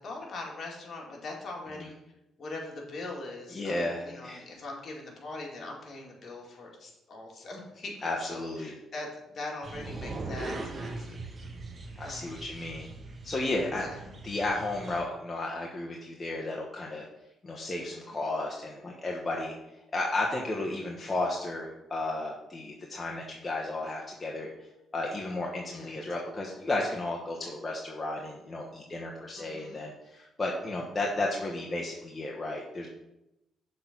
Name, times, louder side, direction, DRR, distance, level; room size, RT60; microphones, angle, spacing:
voice 1, 0.0-1.9 2.4-11.2 12.0-12.4 13.7-14.0 18.0-18.3 25.6-26.0 29.4-29.8, left 2 dB, 50° left, -1 dB, 2.2 m, -42 dB
voice 2, 3.5-4.4 8.0-8.7 12.0-12.9 13.2-13.9 14.2-17.1 17.4-19.5 19.9-24.5 24.9-32.9, left 2 dB, 25° left, -2 dB, 1.2 m, -33 dB
sound 1, 9.6-15.0, right 2 dB, 35° right, 1.1 m, -40 dB
6.6 x 3.9 x 6.0 m, 0.89 s
cardioid pair, 90°, 0 cm